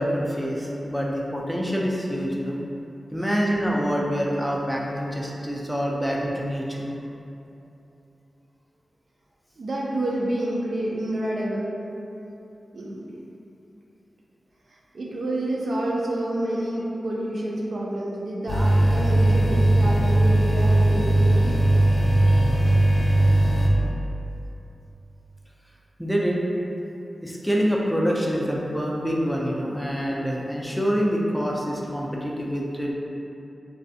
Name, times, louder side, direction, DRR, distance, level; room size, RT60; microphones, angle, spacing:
voice 1, 0.0-2.6 3.1-6.9 26.0-26.4 27.2-32.9, equal, ahead, -3 dB, 0.4 m, -26 dB
voice 2, 9.6-11.7 12.7-13.1 14.7-21.6, right 1 dB, 70° right, -4 dB, 0.4 m, -28 dB
sound 1, 18.5-23.7, right 1 dB, 75° left, 0.3 m, -19 dB
2.5 x 2.2 x 2.6 m, 2.8 s
cardioid pair, 65°, 0 cm